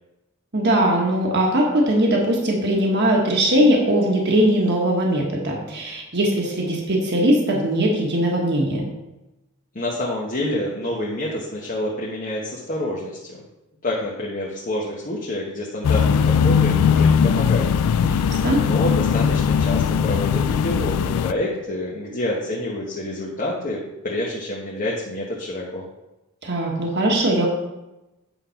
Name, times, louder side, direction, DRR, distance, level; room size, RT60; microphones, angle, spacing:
voice 1, 0.5-8.8 18.0-18.6 26.4-27.5, right 1 dB, 50° right, -1 dB, 1.4 m, -20 dB
voice 2, 9.7-13.4 13.8-17.7 18.0-25.8, left 1 dB, 35° left, -4 dB, 1.1 m, -28 dB
sound 1, 15.8-21.3, left 7 dB, 80° left, 0.3 m, -19 dB
9.1 x 3.8 x 5.7 m, 0.98 s
head